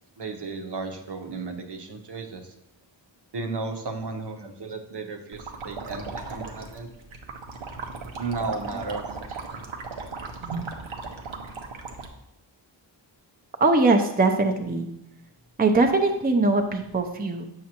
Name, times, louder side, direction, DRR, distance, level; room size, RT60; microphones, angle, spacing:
voice 1, 0.2-2.5 3.3-6.9 8.2-9.2 10.4-10.7, right 3 dB, 60° right, 4 dB, 0.9 m, -34 dB
sound 1, 5.3-12.1, right 4 dB, 85° right, 0.8 m, -37 dB
voice 2, 13.6-14.9 15.6-17.4, right 3 dB, 20° right, 4 dB, 0.6 m, -21 dB
7.4 x 5.7 x 2.9 m, 0.83 s
wide cardioid pair, 65°, 46 cm